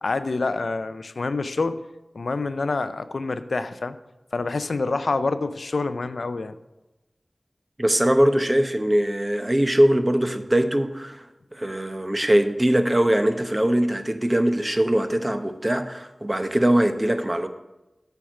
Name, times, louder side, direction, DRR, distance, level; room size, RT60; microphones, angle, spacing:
voice 1, 0.0-1.8 2.1-4.0 4.3-6.5, left 3 dB, 90° left, 11 dB, 0.4 m, -27 dB
voice 2, 7.8-11.2 11.5-17.5, right 1 dB, 25° right, 7 dB, 0.8 m, -21 dB
8.6 x 4.6 x 6.3 m, 1.0 s
wide cardioid pair, 45°, 0 cm